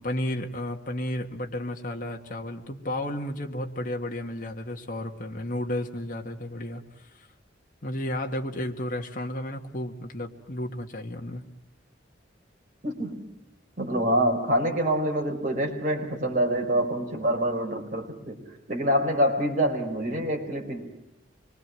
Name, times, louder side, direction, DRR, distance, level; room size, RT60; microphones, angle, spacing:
voice 1, 0.0-7.3 7.8-11.4, left 1 dB, 45° left, 2 dB, 1.9 m, -33 dB
voice 2, 12.8-13.3 13.8-18.4 18.7-20.8, equal, 45° right, 1 dB, 4.8 m, -26 dB
25.5 x 22.5 x 7.7 m, 0.87 s
head